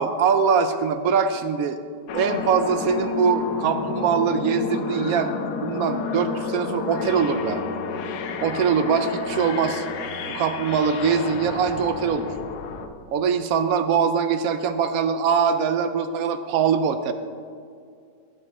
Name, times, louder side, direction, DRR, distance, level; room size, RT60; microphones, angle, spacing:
voice 1, 0.0-1.8 2.1-5.3 5.6-7.6 8.4-9.9 10.3-12.3 13.1-17.1, right 6 dB, 70° right, 10 dB, 0.9 m, -22 dB
sound 1, 2.1-12.9, left 4 dB, 70° left, 1.2 m, -31 dB
14.0 x 7.3 x 3.6 m, 2.3 s
omnidirectional pair, 1.9 m